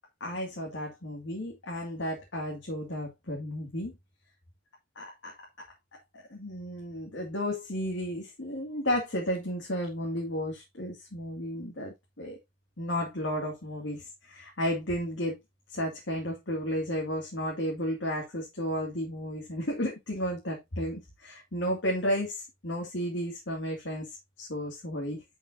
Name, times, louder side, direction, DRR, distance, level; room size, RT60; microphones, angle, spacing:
voice 1, 0.2-3.9 5.0-5.7 5.9-12.4 12.8-15.4 15.7-25.2, equal, 80° left, 2.2 m, -33 dB
10.5 x 5.5 x 2.6 m
head